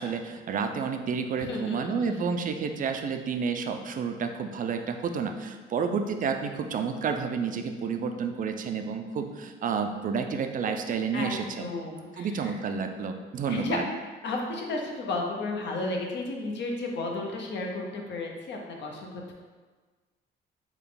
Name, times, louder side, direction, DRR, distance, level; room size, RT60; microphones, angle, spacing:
voice 1, 0.0-11.7 12.2-13.8, right 5 dB, 45° right, 6 dB, 0.4 m, -30 dB
voice 2, 1.4-2.0 11.1-12.6 13.5-13.8 14.2-19.3, left 2 dB, 65° left, 0 dB, 0.7 m, -33 dB
3.5 x 2.3 x 3.8 m, 1.4 s
cardioid pair, 90°, 20 cm